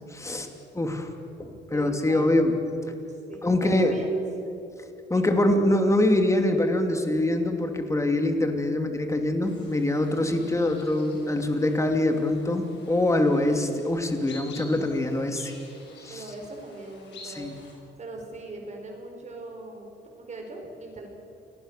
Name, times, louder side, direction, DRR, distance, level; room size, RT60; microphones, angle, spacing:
voice 1, 0.1-0.5 0.7-1.1 1.4-2.5 3.4-3.9 5.1-15.5 16.0-16.2 17.2-17.5, left 1 dB, 15° left, 5 dB, 2.8 m, -24 dB
voice 2, 1.5-2.3 2.8-3.0 3.3-4.2 4.6-4.7 5.2-5.3 16.1-17.4 18.0-21.1, right 2 dB, 40° right, 2 dB, 5.2 m, -41 dB
sound 1, 9.4-17.7, left 3 dB, 75° left, 6.6 m, -50 dB
28.0 x 19.5 x 6.9 m, 2.8 s
cardioid pair, 105°, 18 cm